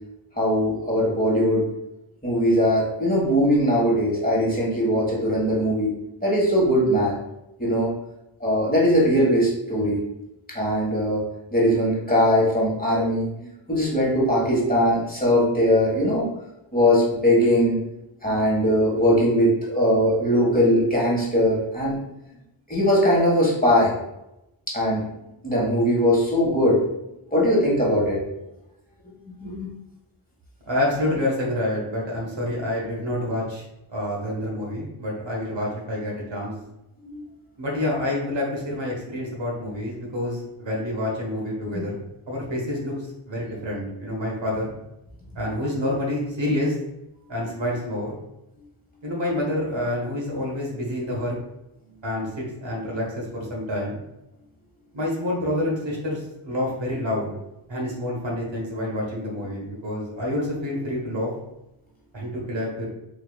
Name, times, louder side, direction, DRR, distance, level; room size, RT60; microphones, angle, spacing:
voice 1, 0.4-1.7 2.2-5.9 6.2-7.2 7.6-7.9 8.4-10.0 10.5-11.2 11.5-16.3 16.7-17.8 18.2-22.0 22.7-23.9 24.7-25.1 25.4-26.8 27.3-28.2 29.4-29.7 37.0-37.2, equal, 20° left, -5 dB, 1.5 m, -20 dB
voice 2, 30.7-33.6 33.9-36.5 37.6-42.0 42.3-42.9 43.3-44.7 45.3-46.7 47.3-48.1 49.0-51.4 52.0-54.0 54.9-57.3 57.7-61.3 62.1-62.9, left 1 dB, 65° right, -3 dB, 1.3 m, -28 dB
4.3 x 2.9 x 2.3 m, 0.89 s
cardioid pair, 45°, 48 cm